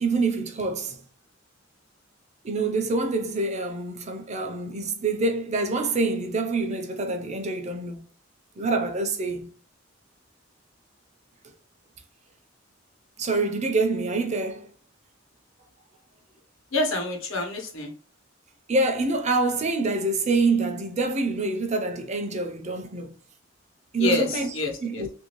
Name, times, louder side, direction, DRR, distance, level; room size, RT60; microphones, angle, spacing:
voice 1, 0.0-1.0 2.4-8.0 8.6-9.5 13.2-14.7 18.7-23.1 23.9-24.5 24.8-25.1, right 3 dB, 35° right, 0.6 m, -26 dB
voice 2, 16.7-17.9 24.0-25.0, left 3 dB, 85° left, 1.1 m, -27 dB
3.2 x 2.7 x 3.0 m
head